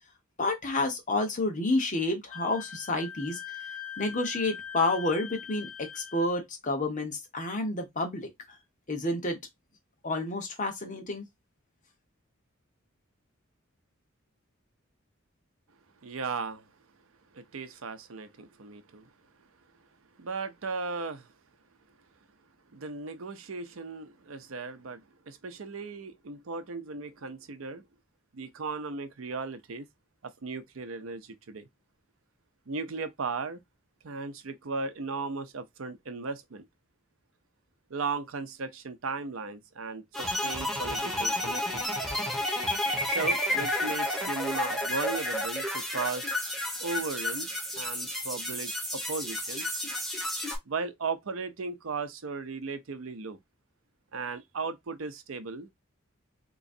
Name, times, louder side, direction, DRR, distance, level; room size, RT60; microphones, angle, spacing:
voice 1, 0.4-3.4 4.0-8.3 8.9-9.4 10.0-11.2, left 2 dB, 40° left, 1.1 m, -29 dB
Wind instrument woodwind instrument, 2.3-6.3, left 8 dB, 85° left, 0.8 m, -42 dB
voice 2, 16.0-16.6 17.3-19.1 20.2-21.3 22.7-27.8 28.3-29.9 30.2-31.7 32.7-33.6 34.0-36.7 37.9-41.9 43.0-46.3 46.8-49.7 50.7-53.4 54.1-55.7, right 4 dB, 75° right, 0.6 m, -36 dB
sound 1, 40.1-50.6, left 1 dB, ahead, 1.4 m, -31 dB
3.8 x 3.0 x 2.6 m
head